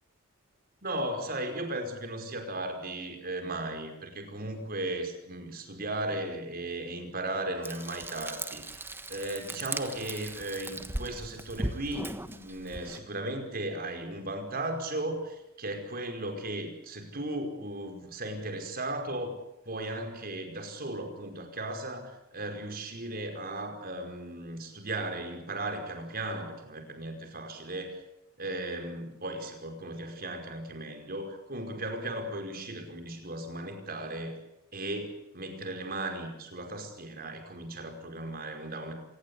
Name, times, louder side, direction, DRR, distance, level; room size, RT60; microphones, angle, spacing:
voice 1, 0.8-28.0 28.4-34.4 34.7-38.9, right 1 dB, 45° right, 6 dB, 5.1 m, -36 dB
Frying (food), 7.6-13.0, right 2 dB, 10° right, 1.3 m, -38 dB
26.0 x 20.5 x 8.5 m, 0.83 s
head